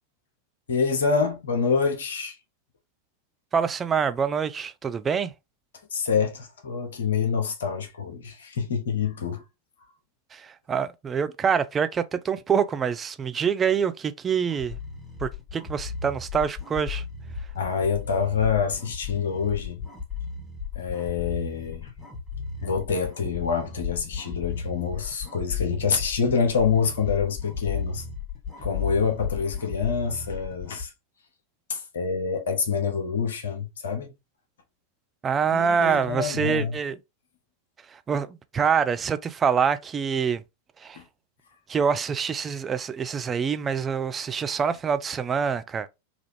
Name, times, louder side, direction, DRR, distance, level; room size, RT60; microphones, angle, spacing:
voice 1, 0.7-2.4 5.9-9.4 17.5-19.8 20.7-21.9 22.6-28.0 28.6-30.9 31.7-34.1 35.5-36.8 41.0-41.1, left 6 dB, 65° left, 0.7 m, -26 dB
voice 2, 3.5-5.3 10.3-14.8 15.2-17.0 35.2-37.0 37.9-40.4 40.8-41.0 41.7-45.9, right 6 dB, 20° right, 0.4 m, -25 dB
sound 1, 14.5-30.9, left 5 dB, 15° left, 1.3 m, -35 dB
3.3 x 2.4 x 3.2 m
figure-of-eight pair, 90°, 0 cm